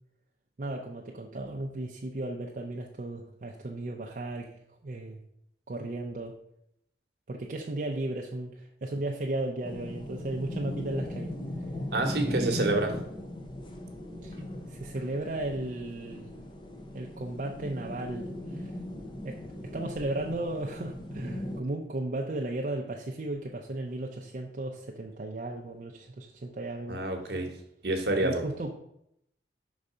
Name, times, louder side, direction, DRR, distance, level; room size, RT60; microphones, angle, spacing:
voice 1, 0.6-4.5 4.8-5.2 5.7-6.4 7.3-11.3 12.2-12.8 14.2-14.4 14.7-16.3 16.9-18.7 19.2-19.4 19.7-27.0 28.2-28.7, right 2 dB, 50° right, 0 dB, 0.5 m, -35 dB
sound 1, 9.6-21.6, left 1 dB, 25° left, 0.6 m, -38 dB
voice 2, 11.9-12.9 26.9-27.5 27.8-28.4, right 2 dB, 65° right, 4 dB, 1.0 m, -28 dB
5.4 x 4.0 x 4.9 m, 0.76 s
head